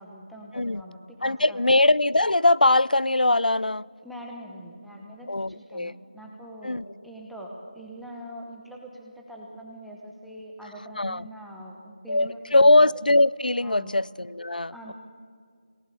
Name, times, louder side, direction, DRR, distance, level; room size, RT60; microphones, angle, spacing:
voice 1, 0.0-1.6 4.0-12.8 13.6-13.9 14.7-14.9, equal, ahead, -2 dB, 1.0 m, -43 dB
voice 2, 1.2-3.8 5.3-5.9 6.6-6.8 11.0-11.3 12.1-14.9, left 2 dB, 85° left, 22 dB, 0.5 m, -21 dB
29.0 x 18.5 x 6.8 m, 2.3 s
figure-of-eight pair, 170°, 5 cm